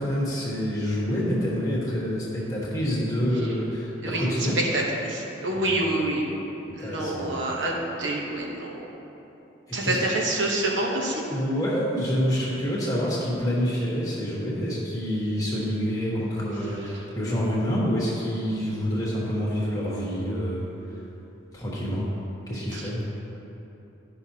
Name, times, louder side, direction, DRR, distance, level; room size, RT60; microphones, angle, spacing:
voice 1, 0.0-4.6 5.5-5.8 6.8-7.3 9.8-10.0 11.3-20.7 21.5-22.1 22.5-23.0, equal, 20° left, -6 dB, 1.3 m, -27 dB
voice 2, 4.0-4.5 4.7-6.4 6.7-8.7 9.7-11.2 22.7-22.9, right 1 dB, 75° right, -2 dB, 1.0 m, -27 dB
12.0 x 5.6 x 2.8 m, 3.0 s
head